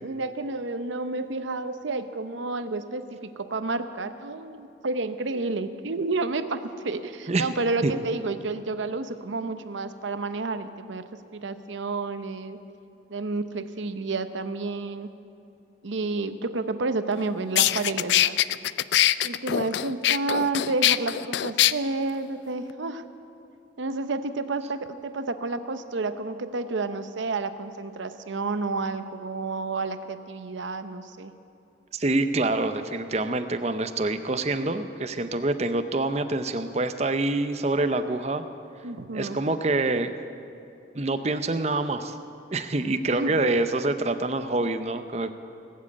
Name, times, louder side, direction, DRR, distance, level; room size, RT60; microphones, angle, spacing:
voice 1, 0.0-11.0 11.3-12.6 13.1-15.1 15.8-18.4 19.2-23.0 23.8-31.3 38.8-39.4 43.1-43.4, right 3 dB, 80° right, 10 dB, 0.8 m, -30 dB
sound 1, 17.1-17.2 17.6-21.7, left 13 dB, 70° left, 0.3 m, -22 dB
voice 2, 31.9-38.4 39.1-40.1 40.9-42.2 42.5-45.3, right 2 dB, 35° right, 9 dB, 0.6 m, -26 dB
18.5 x 7.5 x 8.5 m, 2.6 s
head